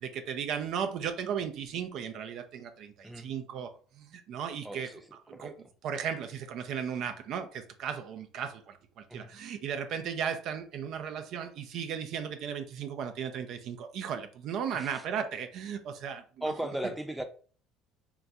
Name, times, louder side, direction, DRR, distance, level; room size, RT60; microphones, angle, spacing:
voice 1, 0.0-4.9 5.3-5.5 5.8-16.2 16.8-16.9, right 7 dB, 60° right, 0.4 m, -36 dB
voice 2, 4.6-5.0 5.3-5.5 9.1-9.3 14.7-15.0 16.4-17.2, right 1 dB, 5° right, 0.6 m, -36 dB
3.7 x 2.2 x 2.7 m
hypercardioid pair, 70°, 0 cm